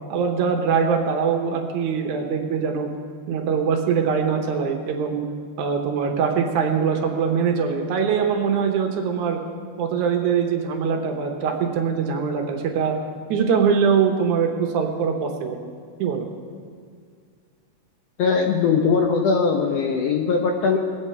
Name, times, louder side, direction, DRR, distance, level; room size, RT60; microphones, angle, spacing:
voice 1, 0.1-2.9 3.3-5.2 5.6-9.4 9.8-12.9 13.3-15.6 16.0-16.2, right 6 dB, 75° right, 3 dB, 2.4 m, -22 dB
voice 2, 18.2-20.8, left 5 dB, 70° left, 2 dB, 1.6 m, -20 dB
21.0 x 8.4 x 4.4 m, 2.1 s
omnidirectional pair, 3.7 m